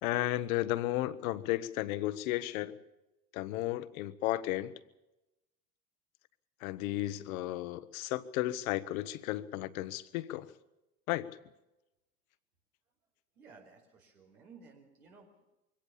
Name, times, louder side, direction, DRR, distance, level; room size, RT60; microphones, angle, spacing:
voice 1, 0.0-2.8 3.3-4.7 6.6-10.5 11.1-11.3, left 15 dB, 70° left, 14 dB, 1.2 m, -34 dB
voice 2, 13.3-15.4, right 4 dB, 90° right, 2 dB, 5.0 m, -56 dB
22.5 x 17.5 x 7.3 m, 0.97 s
hypercardioid pair, 80°, 44 cm